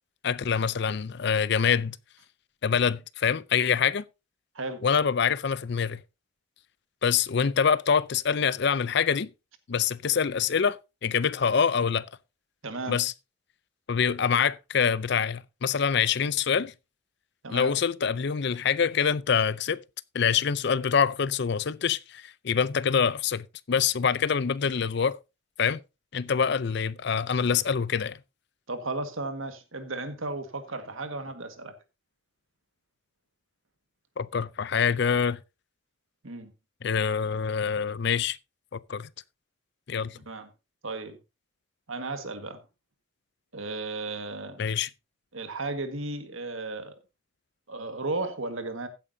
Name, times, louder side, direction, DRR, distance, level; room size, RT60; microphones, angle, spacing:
voice 1, 0.2-2.0 2.6-4.1 4.8-6.0 7.0-9.3 9.7-12.1 12.9-13.1 13.9-16.7 17.5-19.8 20.1-25.2 25.6-25.8 26.1-28.2 34.2-35.4 36.8-38.4 38.7-39.1 39.9-40.2 44.6-44.9, left 6 dB, 55° left, 0.5 m, -25 dB
voice 2, 12.6-13.0 17.4-17.7 28.7-31.7 36.2-36.5 40.2-40.5 40.8-41.2 41.9-42.6 43.5-44.6 45.3-47.0 47.7-48.9, right 2 dB, 75° right, 1.7 m, -34 dB
15.5 x 8.7 x 2.7 m
head